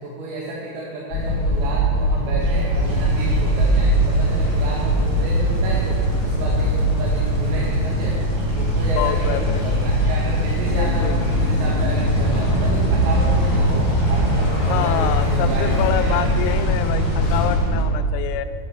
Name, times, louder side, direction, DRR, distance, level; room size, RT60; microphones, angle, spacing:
voice 1, 0.0-8.2 8.6-16.3, right 2 dB, 80° right, -5 dB, 3.9 m, -31 dB
sound 1, 1.1-17.8, right 1 dB, 75° left, 1.8 m, -21 dB
sound 2, 2.4-16.6, right 2 dB, 60° right, 2.4 m, -32 dB
sound 3, 2.8-17.6, left 1 dB, 45° left, 4.4 m, -26 dB
voice 2, 9.0-9.7 10.8-11.2 14.7-18.5, left 11 dB, 90° left, 9 dB, 3.3 m, -26 dB
10.0 x 8.5 x 5.4 m, 2.3 s
omnidirectional pair, 5.9 m